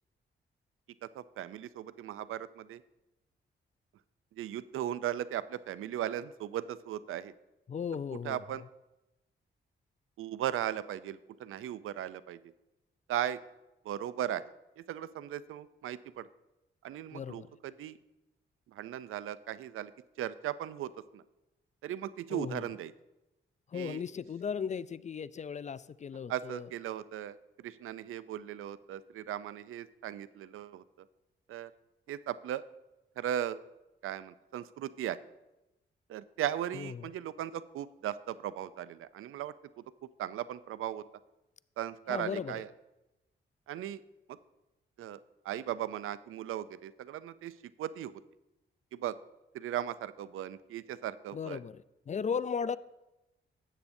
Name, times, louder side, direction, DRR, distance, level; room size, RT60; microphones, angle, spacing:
voice 1, 1.0-2.8 4.3-7.3 8.2-8.6 10.2-12.4 13.1-13.4 13.8-14.4 14.8-16.3 16.8-18.0 18.7-19.9 20.2-21.2 21.8-22.9 23.7-24.0 26.3-31.1 31.5-31.7 32.1-32.6 33.2-33.6 34.0-35.2 36.1-39.5 40.2-41.0 41.8-42.7 43.7-44.0 44.3-44.4 45.0-45.2 45.4-48.2 48.9-49.2 49.5-51.6, right 11 dB, 80° right, 16 dB, 0.4 m, -37 dB
voice 2, 7.7-8.4 17.1-17.5 22.3-22.7 23.7-26.7 36.7-37.1 42.1-42.5 51.3-52.8, left 6 dB, 35° left, 18 dB, 0.3 m, -36 dB
13.0 x 8.2 x 2.7 m, 0.98 s
cardioid pair, 55°, 21 cm